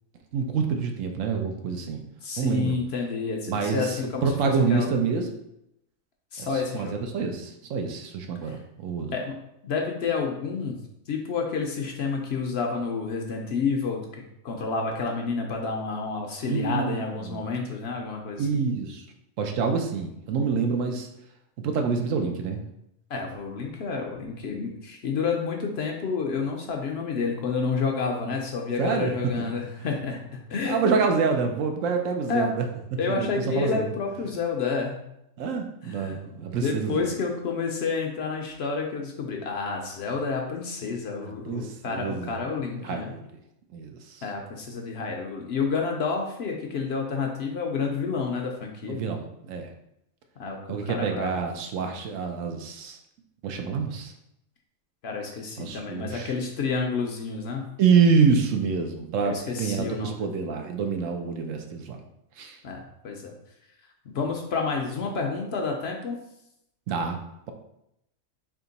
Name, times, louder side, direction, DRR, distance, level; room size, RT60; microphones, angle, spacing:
voice 1, 0.3-2.0 2.4-2.7 3.5-5.3 6.4-6.5 6.7-9.1 16.5-17.4 18.4-19.0 19.4-21.1 21.6-22.6 28.8-29.1 30.6-32.7 32.9-33.9 35.4-37.1 41.2-42.3 42.8-43.3 43.7-44.2 48.9-49.7 50.7-53.0 53.4-54.1 55.6-56.3 57.8-62.0 62.4-62.6 66.9-67.2, right 5 dB, 80° right, 4 dB, 1.0 m, -27 dB
voice 2, 2.2-4.9 6.3-6.9 8.5-8.6 9.1-10.8 11.1-18.7 23.1-30.2 30.5-31.1 32.3-32.5 33.0-35.0 35.8-36.2 36.5-43.1 44.2-49.0 50.4-51.4 55.0-57.7 59.2-60.3 62.6-63.3 64.1-66.2, left 4 dB, 60° left, 1 dB, 0.8 m, -29 dB
3.6 x 2.8 x 3.9 m, 0.81 s
omnidirectional pair, 1.3 m